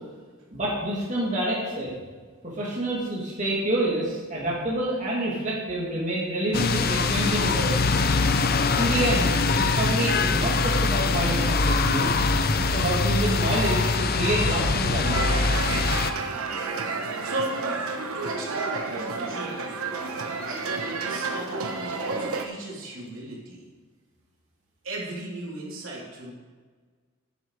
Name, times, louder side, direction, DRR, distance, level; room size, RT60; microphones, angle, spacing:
voice 1, 0.5-1.9 2.4-7.9 8.8-12.1 12.6-15.3, right 1 dB, 35° right, -6 dB, 2.5 m, -27 dB
sound 1, 6.5-16.1, left 3 dB, 45° left, 0.6 m, -23 dB
sound 2, 15.0-22.5, right 4 dB, 90° right, 1.1 m, -31 dB
voice 2, 17.1-17.7 18.1-19.7 20.0-23.7 24.8-26.3, right 2 dB, 65° right, -4 dB, 3.4 m, -36 dB
10.5 x 9.6 x 4.8 m, 1.5 s
head